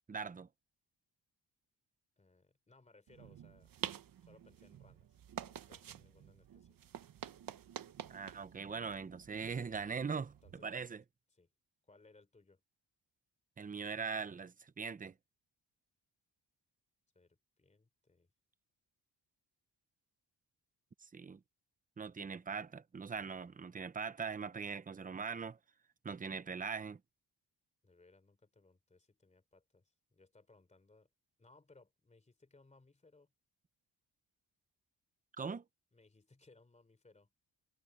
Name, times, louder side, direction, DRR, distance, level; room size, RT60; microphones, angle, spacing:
voice 1, 0.1-0.5 8.1-10.3 10.6-11.0 13.6-15.1 21.0-21.4 22.0-25.6 26.0-27.0 35.4-35.6, right 5 dB, 20° right, 0.6 m, -41 dB
voice 2, 2.2-3.7 4.2-6.8 9.9-10.1 10.4-10.9 11.3-11.5 11.8-12.6 17.1-18.3 21.3-21.4 27.8-31.1 31.4-33.3 35.9-37.3, left 3 dB, 15° left, 3.3 m, -65 dB
sound 1, 3.1-10.6, right 9 dB, 50° right, 1.0 m, -49 dB
wide cardioid pair, 175°, 43 cm